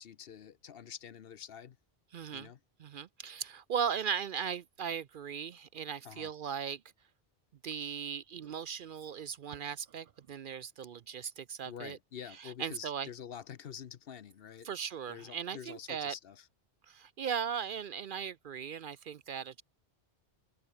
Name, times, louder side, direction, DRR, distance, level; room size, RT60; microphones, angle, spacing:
voice 1, 0.0-1.8 2.3-2.6 6.0-6.3 11.6-14.7 15.1-16.5, left 8 dB, 65° left, 0.9 m, -47 dB
voice 2, 2.1-2.5 2.8-6.8 7.6-12.0 12.4-13.1 14.6-16.1 16.9-19.6, right 7 dB, 60° right, 0.7 m, -38 dB
open air
omnidirectional pair, 1.1 m